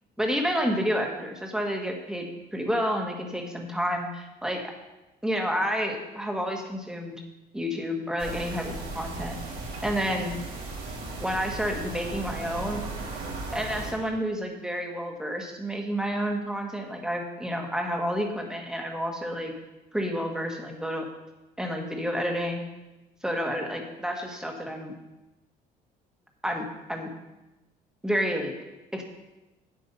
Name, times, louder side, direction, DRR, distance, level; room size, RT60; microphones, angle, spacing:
voice 1, 0.2-2.2 2.5-4.7 5.2-7.2 7.5-9.4 9.8-10.4 11.2-12.8 13.5-19.5 19.9-21.1 21.6-22.7 23.2-24.9 26.4-27.1 28.0-28.5 28.9-29.0, equal, 5° right, 2 dB, 1.8 m, -30 dB
sound 1, 8.2-13.9, right 3 dB, 75° right, 3.7 m, -36 dB
9.1 x 8.4 x 5.6 m, 1.0 s
cardioid pair, 110°, 17 cm